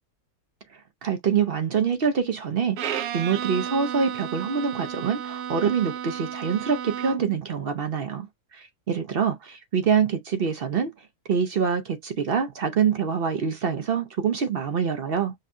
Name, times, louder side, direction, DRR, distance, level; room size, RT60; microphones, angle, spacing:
voice 1, 1.0-8.3 8.5-10.9 11.3-15.3, right 6 dB, 60° right, 0.6 m, -25 dB
Bowed string instrument, 2.8-7.4, right 9 dB, 80° right, 1.2 m, -33 dB
5.3 x 2.1 x 2.5 m
omnidirectional pair, 1.7 m